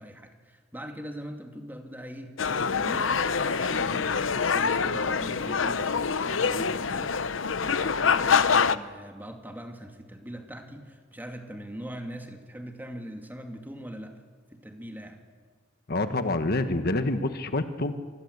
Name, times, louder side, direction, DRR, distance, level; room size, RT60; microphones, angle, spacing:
voice 1, 0.0-14.2 14.5-15.2, equal, 10° right, 4 dB, 2.6 m, -42 dB
sound 1, 2.4-8.8, left 5 dB, 80° left, 0.9 m, -25 dB
voice 2, 15.9-17.9, left 2 dB, 55° left, 9 dB, 1.4 m, -27 dB
27.0 x 20.5 x 8.2 m, 1.5 s
head